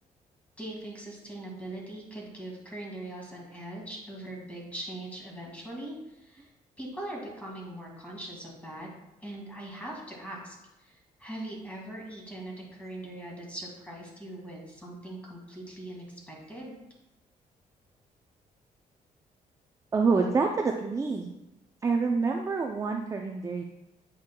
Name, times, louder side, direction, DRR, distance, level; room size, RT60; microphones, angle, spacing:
voice 1, 0.6-6.5 6.8-8.9 9.2-16.7, right 1 dB, 10° left, -2 dB, 1.8 m, -41 dB
voice 2, 19.9-21.3 21.8-23.6, right 4 dB, 20° right, 2 dB, 0.4 m, -27 dB
7.9 x 5.6 x 2.2 m, 0.93 s
cardioid pair, 120°, 14 cm